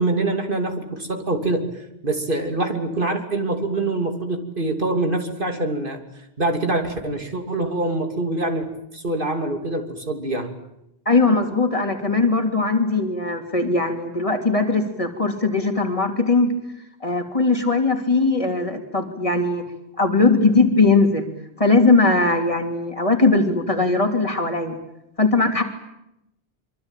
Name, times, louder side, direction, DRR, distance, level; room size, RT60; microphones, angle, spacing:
voice 1, 0.0-1.7 2.0-6.0 6.4-8.7 8.9-10.5, right 2 dB, 55° right, 4 dB, 3.2 m, -24 dB
voice 2, 11.0-16.5 17.0-19.6 20.0-21.3 21.6-24.8 25.2-25.6, left 3 dB, 35° left, 4 dB, 3.1 m, -19 dB
25.0 x 24.5 x 9.1 m, 0.85 s
omnidirectional pair, 1.0 m